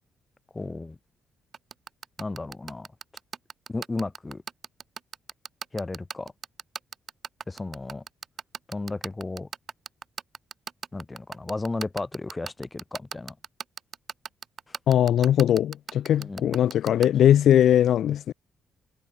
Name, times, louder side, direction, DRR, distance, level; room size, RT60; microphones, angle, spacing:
voice 1, 0.5-1.0 2.2-2.9 3.7-4.4 5.7-6.3 7.5-8.0 8.7-9.5 10.9-13.4 14.7-14.8 16.2-16.6, left 2 dB, 25° left, 1.7 m, -34 dB
sound 1, 1.5-17.1, right 7 dB, 50° right, 1.1 m, -36 dB
voice 2, 14.9-18.3, left 10 dB, 60° left, 0.8 m, -20 dB
figure-of-eight pair, 40°, 0 cm